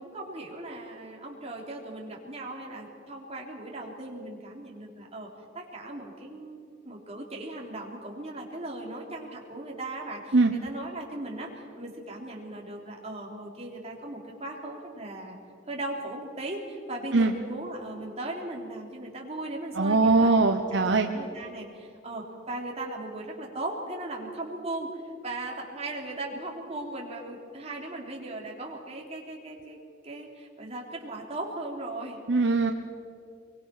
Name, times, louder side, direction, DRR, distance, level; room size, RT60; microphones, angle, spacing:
voice 1, 0.0-5.3 5.5-15.4 15.7-29.8 30.0-32.2, right 2 dB, 30° right, -1 dB, 3.4 m, -38 dB
voice 2, 19.8-21.1 32.3-32.7, right 3 dB, 60° right, 5 dB, 1.0 m, -21 dB
24.0 x 23.0 x 6.0 m, 2.5 s
head